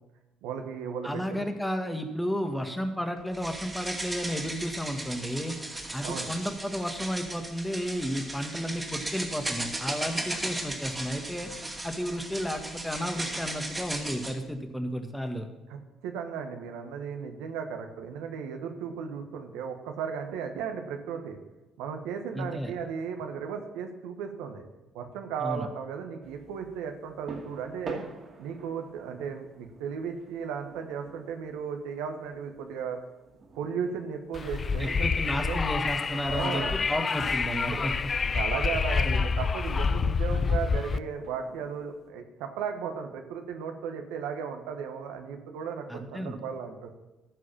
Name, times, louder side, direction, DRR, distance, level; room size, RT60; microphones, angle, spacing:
voice 1, 0.4-1.5 6.0-6.3 15.7-21.4 21.8-24.6 24.9-28.0 28.4-33.0 33.6-35.6 36.3-36.8 38.2-47.0, right 6 dB, 75° right, 5 dB, 1.1 m, -35 dB
voice 2, 1.0-5.6 5.9-11.5 11.8-15.5 22.3-22.7 25.4-25.7 34.8-38.1 39.0-39.2 45.9-46.4, equal, 5° left, 5 dB, 1.7 m, -32 dB
sound 1, 3.3-14.4, right 1 dB, 15° right, 2.2 m, -36 dB
sound 2, 26.2-42.1, right 3 dB, 50° right, 2.3 m, -49 dB
Wind, 34.3-41.0, left 5 dB, 40° left, 0.5 m, -27 dB
14.0 x 4.8 x 7.2 m, 1.0 s
hypercardioid pair, 55°, 0 cm